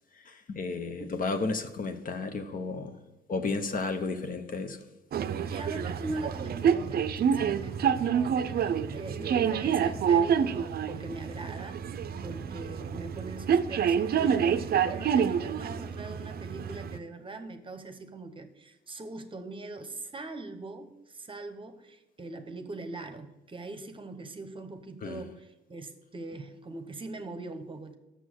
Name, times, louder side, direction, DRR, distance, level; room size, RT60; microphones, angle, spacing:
voice 1, 0.3-3.0 3.3-4.8 25.0-25.2, left 3 dB, 45° left, 0.8 m, -33 dB
sound 1, 5.1-17.0, right 7 dB, 50° right, 0.5 m, -28 dB
voice 2, 5.3-11.8 12.2-28.0, right 2 dB, 25° right, 0.9 m, -42 dB
6.6 x 6.2 x 6.6 m
cardioid pair, 90°, 20 cm